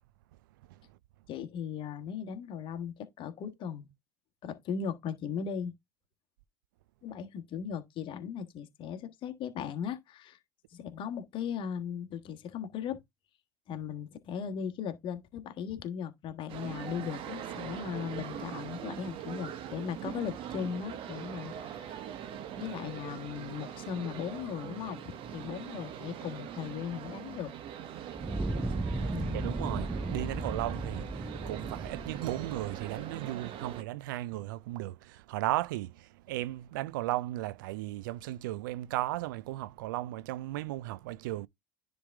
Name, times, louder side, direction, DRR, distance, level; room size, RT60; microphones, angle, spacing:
voice 1, 1.3-3.9 4.4-5.7 7.0-10.4 10.7-13.0 13.7-22.0 22.6-27.5 29.1-29.6, left 7 dB, 50° left, 1.4 m, -38 dB
sound 1, 16.5-33.8, right 9 dB, 55° right, 1.3 m, -42 dB
Fire, 28.1-33.3, right 2 dB, 10° right, 0.5 m, -36 dB
voice 2, 29.3-41.5, right 16 dB, 85° right, 0.4 m, -35 dB
10.0 x 3.4 x 3.6 m
supercardioid pair, 90°, 11 cm